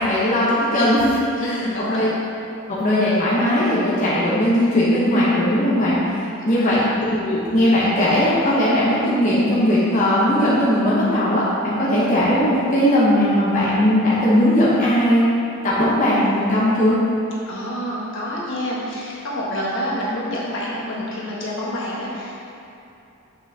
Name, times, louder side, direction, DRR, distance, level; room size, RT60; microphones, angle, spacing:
voice 1, 0.0-1.1 1.4-1.5 1.9-2.1 2.7-15.2 15.6-17.0, left 1 dB, 40° left, -9 dB, 1.0 m, -18 dB
voice 2, 1.3-2.1 6.4-6.8 17.5-22.3, equal, 65° left, -6 dB, 1.4 m, -28 dB
7.5 x 5.9 x 2.8 m, 2.7 s
head